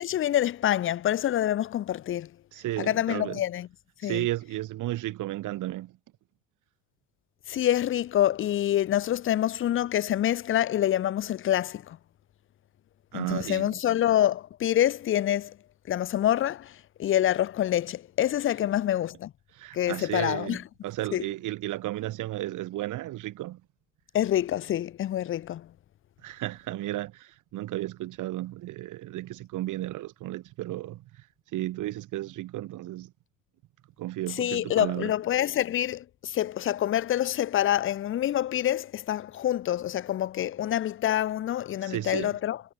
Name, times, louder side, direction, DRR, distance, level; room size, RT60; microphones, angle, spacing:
voice 1, 0.0-2.3 2.8-3.7 4.0-4.3 7.5-12.0 13.1-15.5 15.9-19.3 19.7-20.6 21.1-21.2 24.1-25.7 34.3-42.6, left 12 dB, 45° left, 0.4 m, -26 dB
voice 2, 2.5-3.4 4.0-5.9 13.1-13.8 19.5-20.6 20.8-23.6 26.2-31.3 31.5-33.1 34.0-35.1 41.8-42.3, right 15 dB, 80° right, 1.3 m, -33 dB
cardioid pair, 90°, 30 cm